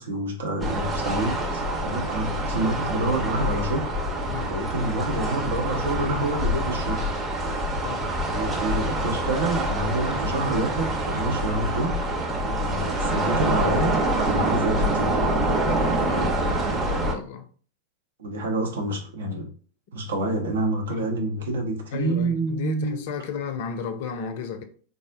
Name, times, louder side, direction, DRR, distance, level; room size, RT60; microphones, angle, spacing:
voice 1, 0.0-3.9 4.5-7.2 8.2-12.1 12.6-15.4 16.1-16.4 18.2-19.5 19.9-23.1, right 2 dB, 65° right, 0.7 m, -28 dB
sound 1, 0.6-17.1, right 1 dB, 15° right, 0.7 m, -26 dB
voice 2, 16.0-16.4 16.7-17.5 20.9-21.1 21.9-24.6, left 7 dB, 50° left, 0.4 m, -34 dB
3.5 x 2.1 x 2.5 m
figure-of-eight pair, 90°, 0 cm